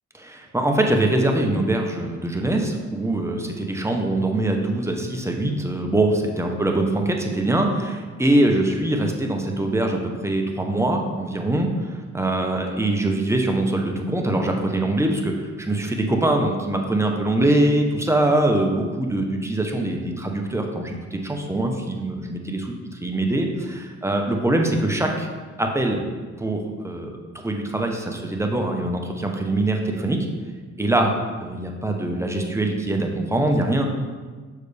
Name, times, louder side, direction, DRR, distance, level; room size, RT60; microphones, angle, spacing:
voice 1, 0.1-22.6 23.0-25.3 25.6-26.0 26.4-27.2 27.4-30.2 30.8-31.1 31.4-34.0, right 1 dB, 10° right, 2 dB, 0.9 m, -23 dB
6.6 x 6.5 x 3.4 m, 1.4 s
cardioid pair, 90°, 30 cm